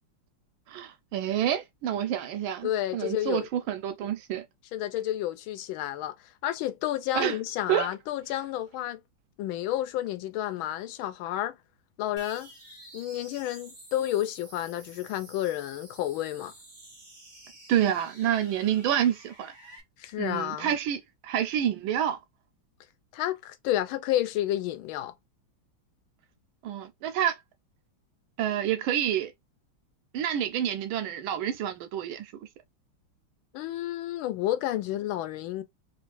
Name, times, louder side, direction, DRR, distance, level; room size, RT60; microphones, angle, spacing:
voice 1, 0.7-4.4 7.1-7.3 7.7-7.9 17.7-19.5 20.2-22.2 26.6-27.4 28.4-29.3 30.1-32.3, right 10 dB, 90° right, 1.4 m, -28 dB
voice 2, 2.6-3.5 4.7-6.1 6.4-9.0 9.4-11.6 12.0-12.5 12.9-16.5 20.0-20.8 23.1-25.1 33.5-35.6, left 13 dB, 85° left, 1.4 m, -30 dB
sound 1, 12.2-19.8, right 1 dB, 30° right, 0.9 m, -50 dB
3.5 x 2.5 x 3.1 m
omnidirectional pair, 2.2 m